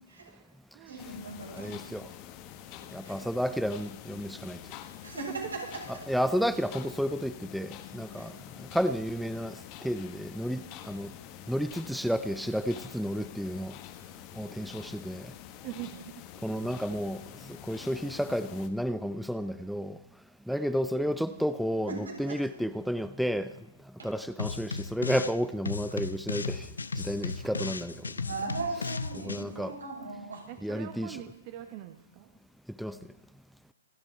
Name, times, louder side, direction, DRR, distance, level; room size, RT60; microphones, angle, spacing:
voice 1, 0.2-1.0 15.6-16.0 20.5-20.7 30.5-32.3, right 12 dB, 40° right, 7 dB, 1.4 m, -44 dB
voice 2, 0.9-1.9 3.0-3.1 5.0-5.6 8.2-8.3 16.4-16.6 21.9-22.4 24.0-24.1 28.2-30.4, right 3 dB, 85° right, -3 dB, 7.6 m, -38 dB
sound 1, 1.0-18.7, left 12 dB, 35° left, 1.4 m, -47 dB
voice 3, 1.5-2.1 2.9-4.6 5.9-11.1 11.5-13.8 14.3-15.3 16.4-20.0 20.5-23.6 24.0-28.1 29.1-29.8 30.6-31.2 32.8-33.0, equal, ahead, 12 dB, 0.5 m, -32 dB
sound 2, 24.4-25.4 25.7-29.4, left 4 dB, 85° left, 0.8 m, -35 dB
27.5 x 9.8 x 4.5 m, 0.83 s
hypercardioid pair, 125°, 0 cm